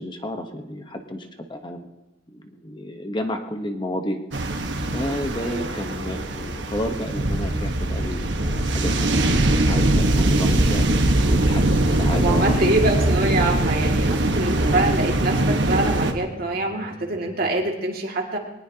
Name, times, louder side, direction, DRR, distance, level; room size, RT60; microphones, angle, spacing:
voice 1, 0.0-1.8 2.3-4.2 4.9-9.2 9.6-10.9 11.3-12.9, left 1 dB, 25° left, 5 dB, 1.0 m, -31 dB
sound 1, 4.3-16.1, right 1 dB, 70° right, 1.3 m, -21 dB
voice 2, 5.4-6.1 12.1-18.4, right 2 dB, 55° right, 1 dB, 2.2 m, -25 dB
sound 2, 5.8-17.6, equal, 30° right, 6.0 m, -44 dB
21.5 x 19.5 x 2.8 m, 1.0 s
head